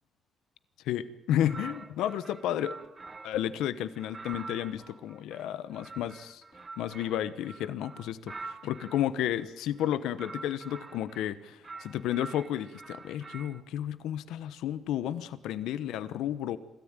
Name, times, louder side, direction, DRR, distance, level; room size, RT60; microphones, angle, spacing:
voice 1, 0.8-2.8 3.2-6.4 6.8-16.6, left 11 dB, 90° left, 14 dB, 0.9 m, -32 dB
sound 1, 1.4-3.5 4.0-9.1 9.7-11.3 11.6-13.6, right 3 dB, 30° right, 1.4 m, -46 dB
25.5 x 14.0 x 9.0 m, 1.0 s
cardioid pair, 90°, 0 cm